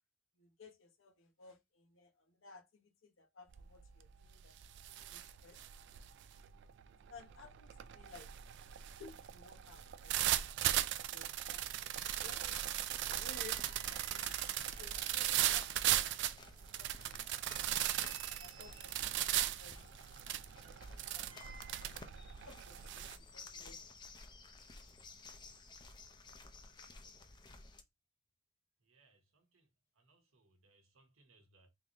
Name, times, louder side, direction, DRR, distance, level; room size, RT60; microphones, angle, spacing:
voice 1, 0.4-4.6 4.9-5.6 7.1-8.3 9.0-10.6 11.1-11.7 12.2-12.5 13.1-17.2 17.5-18.0 18.3-21.4 21.8-22.0 22.4-23.8, left 4 dB, 70° left, 0.8 m, -58 dB
sound 1, 3.5-3.9 4.2-23.2, right 12 dB, 60° right, 0.3 m, -38 dB
sound 2, 12.1-27.8, left 3 dB, 20° left, 0.5 m, -55 dB
sound 3, 13.3-15.5 15.9-16.0 16.5-16.6 17.2-19.1 20.0-22.0 22.2-22.4, right 4 dB, 25° right, 0.8 m, -57 dB
voice 2, 28.8-29.7 30.0-31.7, right 3 dB, 80° right, 1.0 m, -70 dB
3.6 x 2.6 x 2.9 m
head